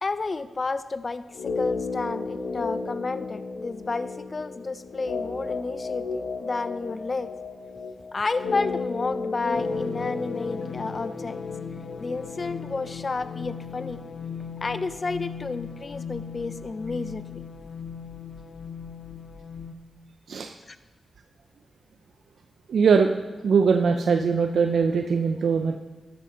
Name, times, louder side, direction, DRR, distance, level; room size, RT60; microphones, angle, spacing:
voice 1, 0.0-7.3 8.1-11.4 12.0-14.0 14.6-17.4 20.7-20.8, left 3 dB, 45° left, 13 dB, 0.6 m, -31 dB
sound 1, 1.3-13.4 13.7-13.8, left 4 dB, 90° left, 1.2 m, -33 dB
sound 2, 9.5-19.7, left 6 dB, 65° left, 1.0 m, -38 dB
voice 2, 22.7-23.1 23.4-25.8, right 5 dB, 75° right, 6 dB, 0.6 m, -21 dB
13.5 x 12.5 x 4.0 m, 1.3 s
cardioid pair, 60°, 0 cm